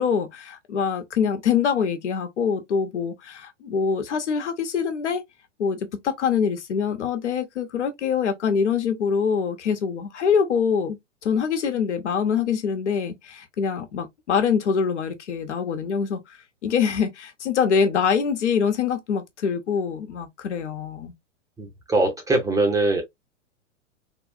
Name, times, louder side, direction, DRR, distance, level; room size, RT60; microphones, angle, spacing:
voice 1, 0.0-5.2 5.6-11.0 11.2-16.2 16.6-21.1, left 6 dB, 70° left, 1.0 m, -24 dB
voice 2, 21.6-23.0, right 2 dB, 10° right, 0.7 m, -22 dB
3.5 x 2.3 x 2.6 m
figure-of-eight pair, 110°, 37 cm